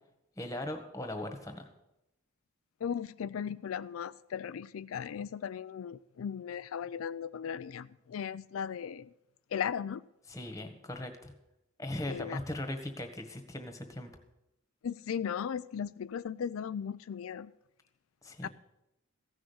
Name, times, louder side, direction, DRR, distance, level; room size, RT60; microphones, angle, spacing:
voice 1, 0.4-1.7 10.3-11.3 11.8-14.1 18.2-18.5, left 1 dB, 15° left, 6 dB, 1.6 m, -39 dB
voice 2, 2.8-9.1 9.5-10.0 12.1-12.4 14.8-17.5 18.4-18.5, left 7 dB, 80° left, 14 dB, 0.4 m, -37 dB
15.5 x 6.2 x 8.5 m, 0.88 s
head